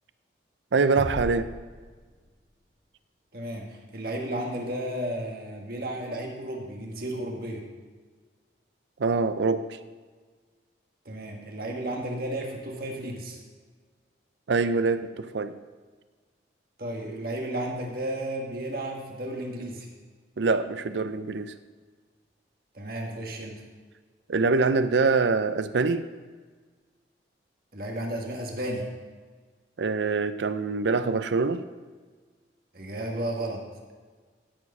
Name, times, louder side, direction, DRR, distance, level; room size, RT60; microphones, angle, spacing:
voice 1, 0.7-1.5 9.0-9.8 14.5-15.5 20.4-21.5 24.3-26.1 29.8-31.6, right 4 dB, 75° right, 12 dB, 0.5 m, -24 dB
sound 1, 0.9-2.7, left 1 dB, 60° left, 1.5 m, -38 dB
voice 2, 3.3-7.7 11.0-13.4 16.8-19.9 22.7-23.7 27.7-28.9 32.7-33.6, right 1 dB, 55° right, 1 dB, 1.6 m, -33 dB
12.5 x 4.7 x 5.5 m, 1.4 s
head